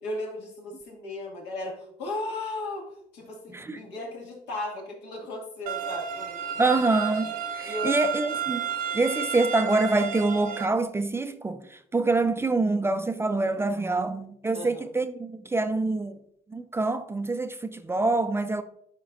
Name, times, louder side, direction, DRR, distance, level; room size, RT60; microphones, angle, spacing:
voice 1, 0.0-6.7 7.6-8.0 14.5-14.8, left 2 dB, 85° left, 2.2 m, -36 dB
voice 2, 3.5-3.8 6.6-16.2 16.5-18.6, right 3 dB, 15° right, 0.4 m, -26 dB
sound 1, 5.7-10.7, right 8 dB, 55° right, 0.7 m, -32 dB
11.0 x 4.4 x 2.5 m
cardioid pair, 110°, 17 cm